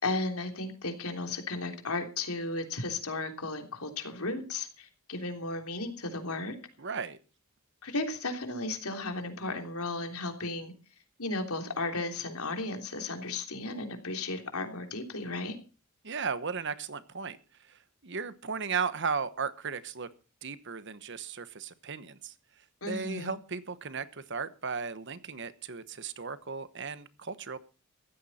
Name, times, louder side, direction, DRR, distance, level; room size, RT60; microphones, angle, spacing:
voice 1, 0.0-6.6 7.8-10.7 11.2-15.6 22.8-23.4, left 2 dB, 75° left, 5 dB, 3.3 m, -34 dB
voice 2, 6.8-7.2 16.0-17.4 17.7-20.1 20.4-22.3 22.9-27.6, right 5 dB, 55° right, 14 dB, 1.1 m, -36 dB
15.5 x 13.5 x 4.3 m, 0.34 s
head